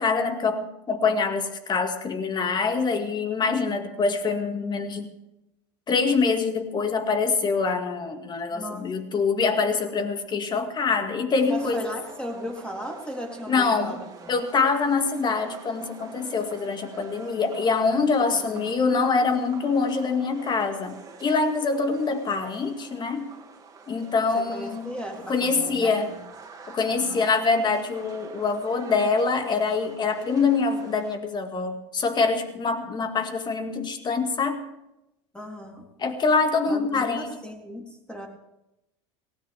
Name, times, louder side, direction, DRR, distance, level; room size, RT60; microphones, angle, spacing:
voice 1, 0.0-5.1 5.9-11.9 13.5-13.9 14.3-23.3 23.9-24.9 25.3-26.1 26.7-34.6 36.0-37.3, left 4 dB, 30° left, 6 dB, 2.2 m, -25 dB
voice 2, 8.5-8.9 11.5-14.3 18.3-18.8 24.3-26.2 27.0-27.3 35.3-35.9 36.7-38.3, equal, 5° left, 1 dB, 3.7 m, -37 dB
sound 1, 11.3-31.2, right 4 dB, 25° right, 2.6 m, -46 dB
18.0 x 17.0 x 3.6 m, 0.89 s
supercardioid pair, 100°, 15 cm